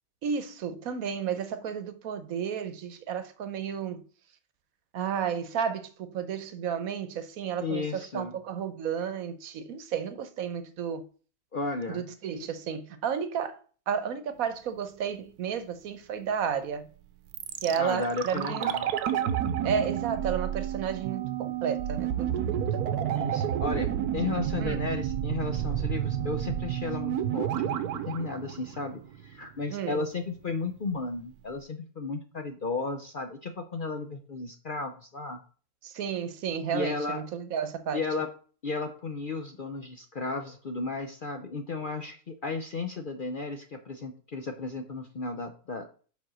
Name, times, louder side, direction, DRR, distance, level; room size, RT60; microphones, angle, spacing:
voice 1, 0.2-4.0 4.9-11.1 11.9-13.6 13.9-16.9 17.6-18.8 19.6-22.6 24.6-24.8 29.7-30.0 35.8-38.0, right 7 dB, 70° right, 1.2 m, -32 dB
voice 2, 7.6-8.4 11.5-12.1 17.8-18.9 23.1-35.4 36.7-37.2 37.9-38.3 38.6-45.9, left 3 dB, 50° left, 0.6 m, -34 dB
sound 1, 17.3-29.3 29.6-29.7, right 10 dB, 85° right, 1.2 m, -30 dB
5.3 x 5.2 x 6.1 m
omnidirectional pair, 1.6 m